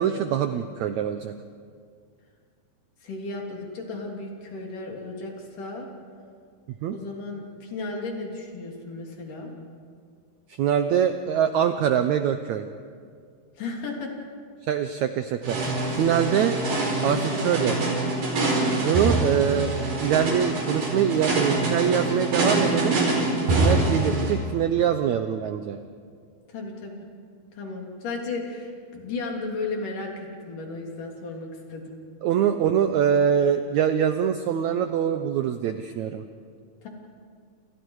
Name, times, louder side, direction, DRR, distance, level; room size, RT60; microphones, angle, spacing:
voice 1, 0.0-1.4 6.8-6.9 10.6-12.7 14.7-16.6 17.0-17.7 18.8-19.7 20.0-23.0 23.4-25.8 32.2-36.2, right 9 dB, 90° right, 8 dB, 1.6 m, -24 dB
voice 2, 3.0-5.9 6.9-9.5 13.6-14.1 16.7-16.8 17.1-18.1 26.5-27.1 27.5-32.0 36.8-36.9, left 3 dB, 60° left, 0 dB, 4.6 m, -35 dB
sound 1, 15.4-24.3, right 2 dB, 75° right, 6.7 m, -25 dB
29.0 x 28.0 x 4.8 m, 2.1 s
omnidirectional pair, 4.4 m